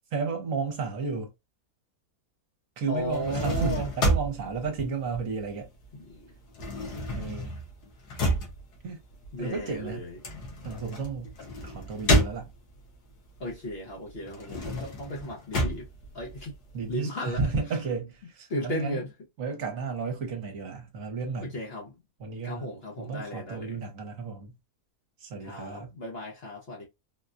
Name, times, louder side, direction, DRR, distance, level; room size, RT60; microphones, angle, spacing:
voice 1, 0.1-1.3 2.8-5.7 7.1-7.5 8.8-9.0 9.4-10.1 10.6-11.4 11.6-12.5 16.7-19.0 19.4-21.6 22.2-24.5 25.2-25.9, right 5 dB, 60° right, 1.2 m, -33 dB
voice 2, 2.9-3.9 5.9-6.3 7.2-7.3 9.3-10.2 13.4-15.9 16.1-16.6 16.9-17.4 18.5-19.1 21.4-21.9 22.4-23.8 25.4-26.8, left 1 dB, 50° left, 0.9 m, -35 dB
sound 1, 3.0-5.8 6.1-12.9 13.4-16.9, equal, 90° left, 1.6 m, -30 dB
4.1 x 2.2 x 2.4 m
omnidirectional pair, 1.7 m